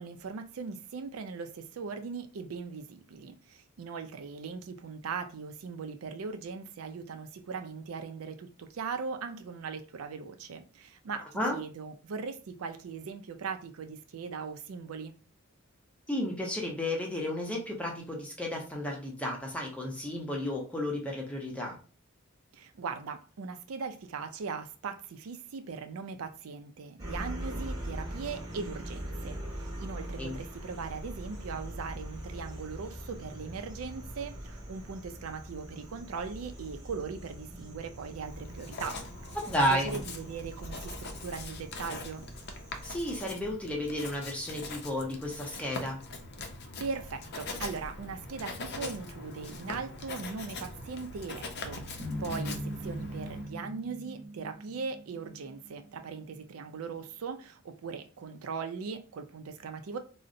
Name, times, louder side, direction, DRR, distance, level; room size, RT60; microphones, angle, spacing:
voice 1, 0.0-15.1 22.5-39.0 39.7-42.2 46.8-60.0, right 5 dB, 90° right, 0.4 m, -39 dB
voice 2, 16.1-21.8 30.2-30.4 39.3-40.0 42.8-46.0, left 1 dB, 5° left, 0.7 m, -32 dB
sound 1, 27.0-43.2, right 1 dB, 20° right, 0.9 m, -42 dB
Writing, 38.2-53.5, left 2 dB, 55° left, 0.5 m, -42 dB
sound 2, 52.0-56.4, equal, 50° right, 0.9 m, -41 dB
3.8 x 2.1 x 2.6 m
head